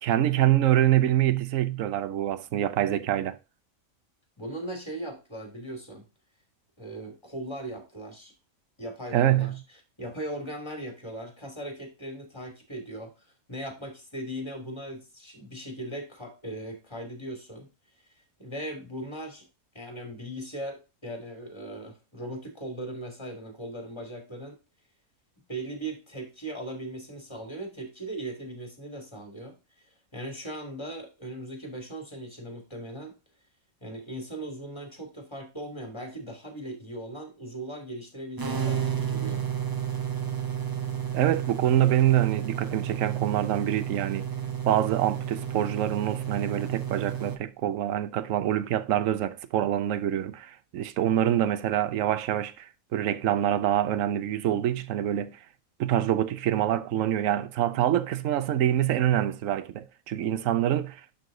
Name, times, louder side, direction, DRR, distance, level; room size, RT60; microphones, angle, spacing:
voice 1, 0.0-3.4 9.1-9.5 41.1-44.3 44.7-55.4 55.8-61.0, right 12 dB, 70° right, 1.0 m, -25 dB
voice 2, 4.4-6.0 6.8-8.3 8.8-9.5 10.0-13.1 13.5-17.7 18.4-19.4 19.7-24.5 25.5-29.5 30.1-33.1 33.8-39.4, right 1 dB, 20° left, 2.6 m, -38 dB
sound 1, 38.4-47.4, right 9 dB, 20° right, 0.6 m, -31 dB
11.0 x 3.9 x 3.8 m
omnidirectional pair, 1.5 m